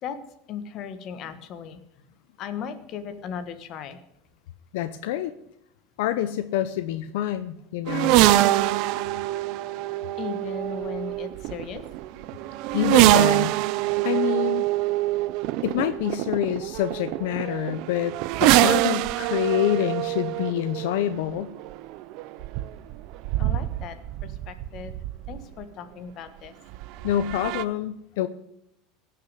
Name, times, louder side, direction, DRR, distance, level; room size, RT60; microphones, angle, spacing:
voice 1, 0.5-1.8 2.4-4.0 10.2-11.8 23.4-24.9 25.3-26.5, left 7 dB, 40° left, 10 dB, 1.5 m, -37 dB
voice 2, 4.7-5.3 6.0-8.2 12.7-13.5 14.0-14.6 15.6-18.1 18.4-21.5 27.0-28.3, left 11 dB, 75° left, 11 dB, 0.7 m, -27 dB
sound 1, 7.9-25.6 26.7-27.6, right 16 dB, 55° right, 0.6 m, -24 dB
17.5 x 6.7 x 8.2 m, 0.79 s
supercardioid pair, 155°, 0 cm